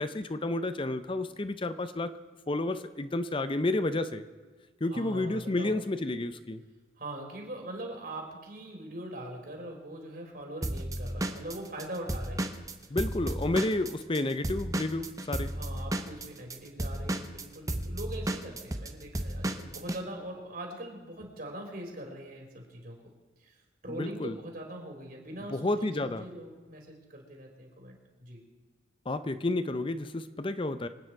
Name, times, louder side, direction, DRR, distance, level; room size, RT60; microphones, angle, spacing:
voice 1, 0.0-2.1 2.5-4.3 4.8-6.6 12.9-15.5 23.9-24.4 25.5-26.2 29.1-30.9, left 2 dB, 30° left, 12 dB, 0.6 m, -31 dB
voice 2, 4.9-5.7 7.0-12.5 15.4-23.1 23.4-23.6 23.8-28.4, right 1 dB, 50° right, 1 dB, 3.7 m, -42 dB
Drum kit / Drum, 10.6-14.2 14.4-20.0, right 1 dB, 20° right, 0.8 m, -33 dB
25.5 x 9.2 x 4.7 m, 1.4 s
head